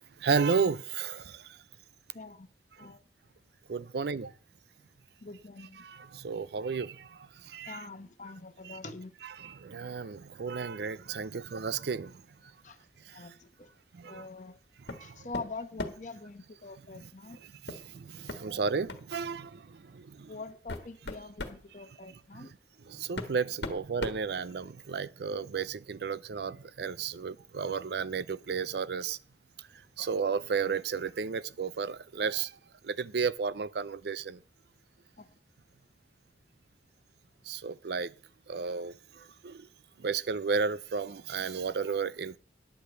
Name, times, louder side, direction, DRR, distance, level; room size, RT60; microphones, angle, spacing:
voice 1, 0.2-1.4 3.7-4.3 5.8-7.2 7.5-7.8 8.6-8.8 9.2-12.1 14.0-14.2 14.9-15.1 17.0-17.1 17.4-20.3 22.3-22.5 22.9-29.2 30.0-32.5 32.8-34.4 37.5-38.1 38.5-38.9 39.4-39.7 40.0-42.4, right 5 dB, 65° right, 0.4 m, -33 dB
voice 2, 2.1-2.5 2.8-3.0 5.2-5.8 7.6-9.1 12.6-12.8 13.1-13.7 14.0-14.6 15.0-17.4 20.3-22.5 35.2-35.3, left 3 dB, 45° left, 0.9 m, -44 dB
sound 1, 14.9-15.1 15.3-16.1 17.7-17.8 18.3-18.4 18.9-19.1 19.9-20.0 20.5-21.6 22.7-22.8 23.2-24.9, left 2 dB, 70° left, 1.4 m, -39 dB
10.5 x 5.1 x 7.9 m
head